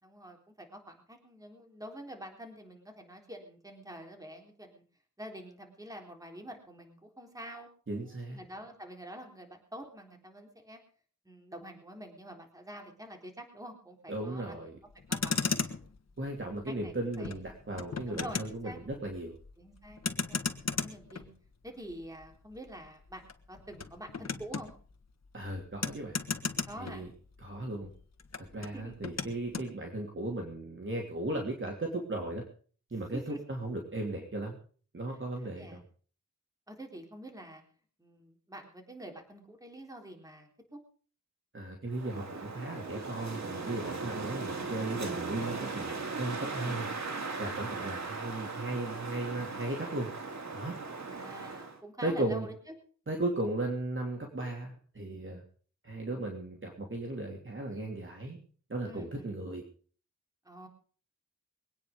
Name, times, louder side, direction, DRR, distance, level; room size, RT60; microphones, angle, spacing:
voice 1, 0.0-4.8 5.2-10.8 11.3-14.6 15.1-15.4 16.7-17.3 18.1-18.4 18.6-18.8 19.6-21.3 21.6-24.7 26.7-27.0 28.7-29.0 33.1-33.4 35.1-35.8 36.7-37.6 38.0-40.8 46.6-46.9 51.0-52.7 58.9-59.3 60.4-60.7, equal, 10° right, 2 dB, 3.8 m, -47 dB
voice 2, 7.9-8.4 14.1-14.8 16.2-19.3 25.3-26.2 26.8-27.1 27.4-27.9 28.4-32.4 32.9-34.6 34.9-35.8 41.5-46.8 47.4-50.1 50.5-50.7 52.0-52.5 53.1-55.4 55.8-58.4 58.7-59.6, right 2 dB, 45° right, 0 dB, 3.1 m, -36 dB
Motor vehicle (road), 14.9-27.5 27.8-29.7, left 5 dB, 60° left, 1.5 m, -37 dB
Wind, 41.9-51.8, right 4 dB, 70° right, 2.5 m, -38 dB
22.5 x 9.4 x 5.3 m, 0.44 s
wide cardioid pair, 100°, 29 cm